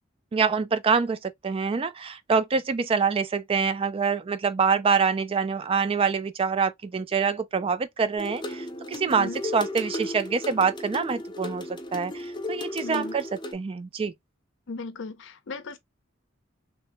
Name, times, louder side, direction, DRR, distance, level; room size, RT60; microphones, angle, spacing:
voice 1, 0.3-13.2 13.5-14.1, right 5 dB, 30° right, 0.3 m, -25 dB
sound 1, 8.2-13.5, left 1 dB, 20° left, 0.6 m, -35 dB
voice 2, 12.8-13.2 14.7-15.8, left 3 dB, 65° left, 0.6 m, -37 dB
3.2 x 2.1 x 2.8 m
head